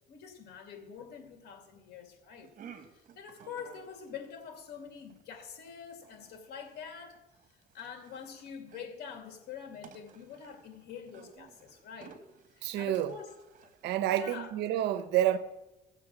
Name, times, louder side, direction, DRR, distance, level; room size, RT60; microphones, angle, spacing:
voice 1, 0.1-2.5 2.9-7.2 7.7-12.2 12.5-13.3 13.6-13.7 14.1-14.5, left 7 dB, 75° left, 2.4 m, -46 dB
sound 1, 2.4-14.4, right 7 dB, 50° right, 1.7 m, -56 dB
voice 2, 12.6-13.1 13.8-15.4, right 12 dB, 85° right, 1.0 m, -28 dB
16.0 x 7.5 x 7.3 m
cardioid pair, 110°, 17 cm